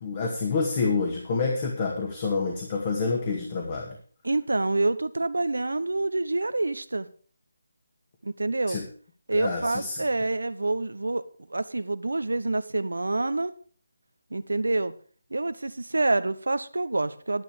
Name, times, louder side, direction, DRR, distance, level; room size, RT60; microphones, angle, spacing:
voice 1, 0.0-3.9 8.7-8.8 9.3-10.0, left 4 dB, 35° left, 1 dB, 2.1 m, -28 dB
voice 2, 4.2-7.1 8.2-8.8 9.3-11.2 11.5-13.5 14.3-14.9 15.3-17.4, right 2 dB, 75° right, 14 dB, 0.9 m, -27 dB
11.0 x 10.5 x 5.0 m, 0.43 s
figure-of-eight pair, 155°, 0 cm